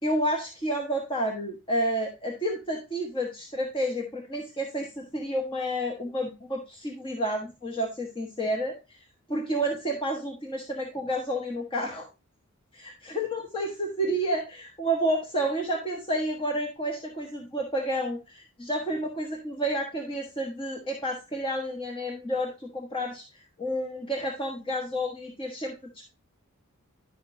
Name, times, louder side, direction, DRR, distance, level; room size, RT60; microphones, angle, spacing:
voice 1, 0.0-9.0 9.3-12.1 13.1-25.7, right 1 dB, 25° left, 1 dB, 1.3 m, -30 dB
11.0 x 5.9 x 2.7 m, 0.27 s
head